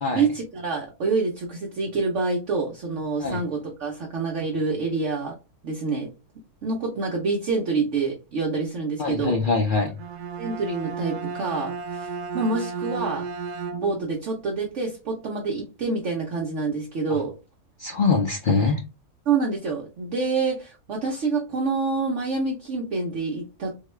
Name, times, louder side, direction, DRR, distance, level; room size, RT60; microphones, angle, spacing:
voice 1, 0.1-5.3 5.6-6.1 6.6-9.4 10.4-13.3 13.7-17.3 19.3-23.7, right 4 dB, 60° right, 1.0 m, -27 dB
voice 2, 9.0-9.9 17.1-17.2 17.8-18.8, left 4 dB, 70° left, 0.5 m, -23 dB
Bowed string instrument, 9.9-14.2, right 5 dB, 85° right, 1.1 m, -33 dB
3.7 x 2.3 x 3.1 m
omnidirectional pair, 1.6 m